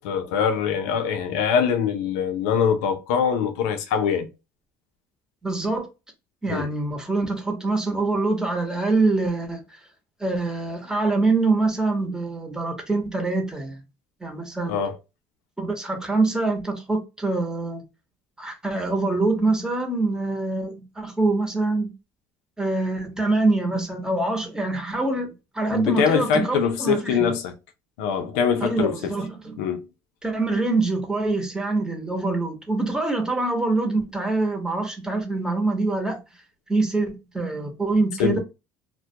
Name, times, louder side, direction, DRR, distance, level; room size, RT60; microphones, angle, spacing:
voice 1, 0.0-4.3 6.5-6.7 14.7-14.9 25.7-27.5 28.0-28.9 29.6-29.8 38.2-38.4, left 7 dB, 90° left, 0.5 m, -23 dB
voice 2, 5.4-5.9 6.4-9.6 10.2-13.8 14.2-14.8 15.6-17.8 18.4-21.9 22.6-27.3 28.6-29.6 30.2-36.2 36.7-38.4, right 3 dB, 10° right, 0.9 m, -24 dB
2.2 x 2.2 x 2.7 m
supercardioid pair, 90°, 8 cm